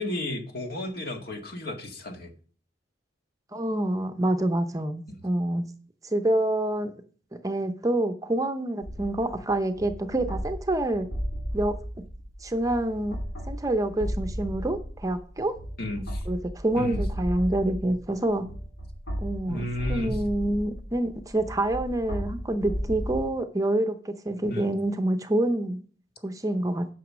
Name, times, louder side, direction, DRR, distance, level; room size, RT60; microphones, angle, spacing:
voice 1, 0.0-2.3 15.8-16.2 16.8-17.0 19.5-20.2 24.5-24.7, left 1 dB, 55° left, 4 dB, 1.8 m, -33 dB
voice 2, 3.5-5.6 6.0-6.9 7.4-11.1 11.5-11.7 12.4-13.2 13.5-15.5 16.3-18.4 19.2-25.8 26.2-26.9, right 1 dB, 20° right, 8 dB, 0.7 m, -27 dB
sound 1, 8.8-23.2, equal, 75° left, 3.7 m, -35 dB
9.2 x 6.1 x 6.1 m, 0.44 s
head